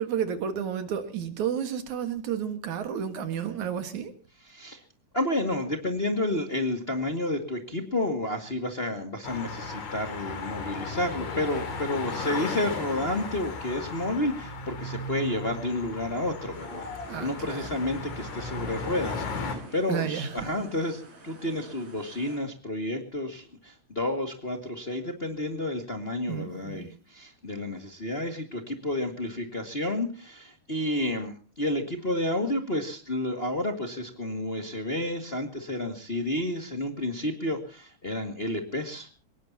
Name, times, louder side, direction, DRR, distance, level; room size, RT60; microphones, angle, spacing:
voice 1, 0.0-4.1 17.1-17.7 19.9-20.5 26.2-26.9, right 8 dB, 70° right, 3.0 m, -31 dB
voice 2, 4.5-4.8 5.1-16.9 17.2-39.1, left 1 dB, 25° left, 1.7 m, -30 dB
sound 1, 9.2-19.6, left 3 dB, 65° left, 3.9 m, -36 dB
sound 2, 16.5-22.4, equal, 55° right, 6.4 m, -47 dB
23.5 x 19.5 x 2.8 m
omnidirectional pair, 3.6 m